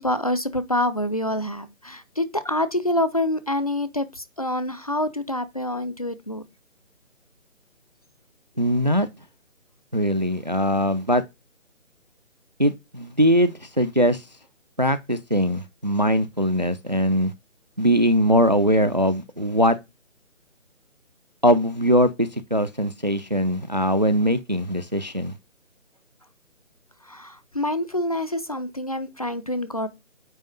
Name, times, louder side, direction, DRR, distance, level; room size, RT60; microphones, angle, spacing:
voice 1, 0.0-6.4 27.0-29.9, left 1 dB, 30° left, 0.6 m, -26 dB
voice 2, 8.6-9.1 9.9-11.2 12.6-14.2 14.8-17.3 17.8-19.8 21.4-25.3, equal, 35° right, 0.4 m, -21 dB
9.0 x 3.1 x 5.3 m
figure-of-eight pair, 150°, 39 cm